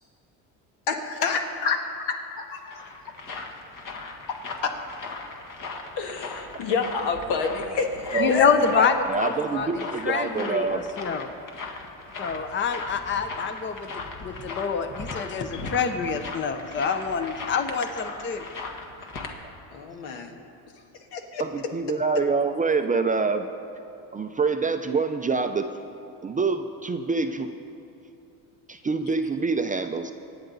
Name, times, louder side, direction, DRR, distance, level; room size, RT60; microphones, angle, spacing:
voice 1, 0.9-1.8 2.1-2.8 4.6-4.7 6.0-8.9 19.7-20.3 21.1-21.4, left 5 dB, 70° left, 3 dB, 1.8 m, -28 dB
sound 1, 2.3-19.3, left 3 dB, 45° left, 1.7 m, -38 dB
voice 2, 8.2-9.7 10.0-11.3 12.2-18.4, left 5 dB, 25° left, 8 dB, 0.7 m, -26 dB
voice 3, 9.1-10.9 21.4-23.5 24.1-25.7 26.2-27.5 28.7-30.1, right 4 dB, 20° right, 7 dB, 0.5 m, -26 dB
24.5 x 9.0 x 4.0 m, 2.8 s
cardioid pair, 110°, 42 cm